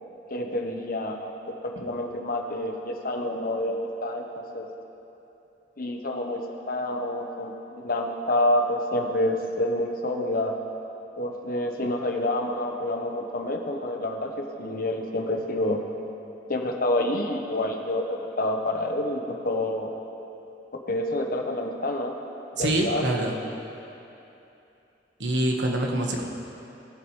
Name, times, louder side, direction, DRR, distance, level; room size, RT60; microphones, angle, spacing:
voice 1, 0.3-4.7 5.8-10.5 11.2-15.8 16.5-19.9 20.9-22.1 22.5-23.1, left 1 dB, 55° left, 2 dB, 1.1 m, -28 dB
voice 2, 22.6-23.3 25.2-26.2, right 1 dB, 80° right, 1 dB, 1.4 m, -25 dB
19.5 x 8.8 x 3.2 m, 2.9 s
head